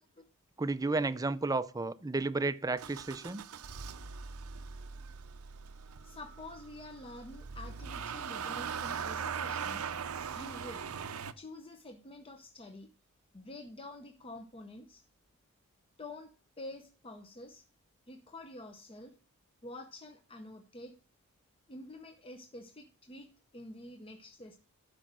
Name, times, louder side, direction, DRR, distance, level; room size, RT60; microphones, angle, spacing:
voice 1, 0.6-3.4, right 3 dB, 15° right, 0.4 m, -32 dB
Motor vehicle (road) / Engine starting, 2.8-11.3, right 6 dB, 75° right, 0.6 m, -40 dB
voice 2, 5.8-9.9 10.3-10.8 11.4-12.9 13.3-15.0 16.0-16.3 16.6-17.7 18.1-19.1 19.6-20.9 21.7-24.6, left 1 dB, 25° left, 0.7 m, -48 dB
12.0 x 5.0 x 6.0 m
head